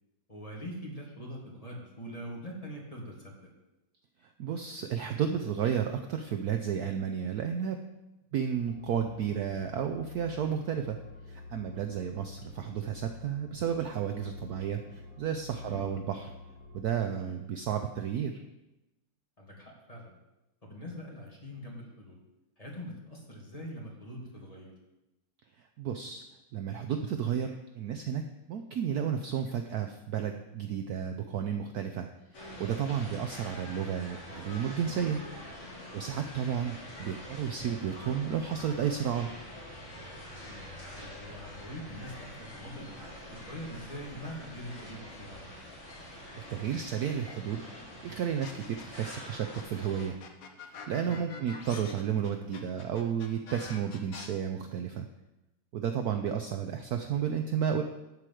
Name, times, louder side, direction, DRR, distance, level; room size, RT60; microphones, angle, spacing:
voice 1, 0.3-3.5 15.6-16.0 17.2-17.4 19.4-20.2 20.6-22.2 22.6-24.7 37.4-37.5 40.5-43.0 43.3-45.5 51.0-51.2, equal, 15° left, -3 dB, 2.1 m, -43 dB
voice 2, 4.4-7.8 8.3-11.0 11.3-16.3 16.7-18.4 25.8-26.2 26.5-32.1 32.3-35.2 35.9-39.3 46.1-47.6 48.0-50.2 50.6-55.1 55.7-57.8, right 8 dB, 75° right, 6 dB, 0.8 m, -32 dB
sound 1, 8.6-16.8, left 2 dB, 45° right, 2.2 m, -48 dB
sound 2, 32.3-50.1, left 1 dB, 75° left, 5.8 m, -46 dB
sound 3, 48.4-49.1 49.5-54.3, left 5 dB, 50° left, 1.1 m, -46 dB
11.0 x 5.0 x 7.7 m, 0.97 s
omnidirectional pair, 2.3 m